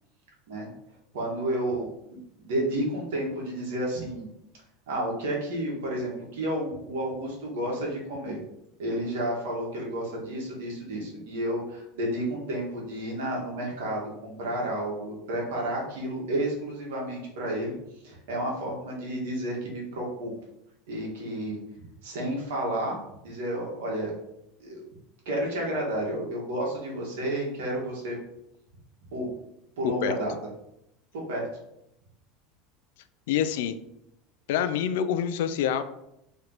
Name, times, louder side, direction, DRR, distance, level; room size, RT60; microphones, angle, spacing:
voice 1, 1.1-1.9 2.4-4.3 4.9-8.4 8.8-17.7 18.0-20.3 20.9-21.6 22.0-23.0 23.2-24.1 24.6-24.8 25.2-28.2 29.1-29.3 29.8-30.3 31.1-31.5, right 1 dB, 80° right, -2 dB, 1.3 m, -31 dB
voice 2, 33.3-33.8 34.5-35.8, left 9 dB, 75° left, 11 dB, 0.3 m, -26 dB
3.2 x 2.9 x 3.9 m, 0.83 s
hypercardioid pair, 95°, 0 cm